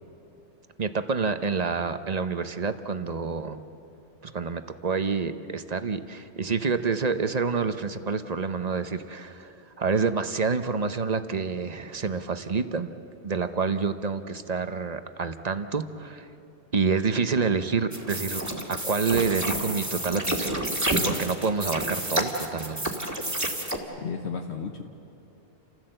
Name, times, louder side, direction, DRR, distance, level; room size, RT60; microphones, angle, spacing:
voice 1, 0.8-3.6 4.2-12.9 13.2-16.3 16.7-18.4 18.7-22.8, right 5 dB, 40° right, 10 dB, 0.9 m, -28 dB
sound 1, 17.9-23.8, right 1 dB, 15° right, 2.0 m, -29 dB
voice 2, 24.0-24.8, left 6 dB, 70° left, 3 dB, 1.3 m, -33 dB
29.5 x 15.0 x 7.8 m, 3.0 s
omnidirectional pair, 1.2 m